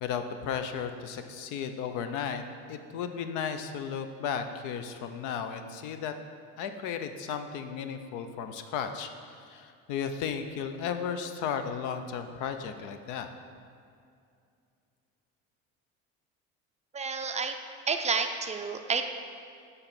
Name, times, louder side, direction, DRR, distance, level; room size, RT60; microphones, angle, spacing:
voice 1, 0.0-6.1 6.6-13.3, left 7 dB, 75° left, 8 dB, 0.7 m, -35 dB
voice 2, 16.9-17.5 17.9-19.0, right 5 dB, 25° right, 6 dB, 0.4 m, -30 dB
7.9 x 3.9 x 5.8 m, 2.4 s
cardioid pair, 120°, 30 cm